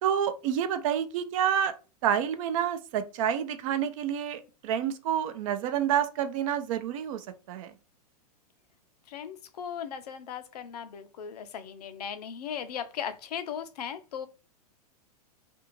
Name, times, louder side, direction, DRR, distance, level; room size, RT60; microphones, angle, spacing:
voice 1, 0.0-1.7 2.0-7.7, right 9 dB, 55° right, 0.5 m, -28 dB
voice 2, 9.1-14.3, left 8 dB, 75° left, 0.5 m, -37 dB
2.5 x 2.3 x 3.0 m
hypercardioid pair, 110°, 21 cm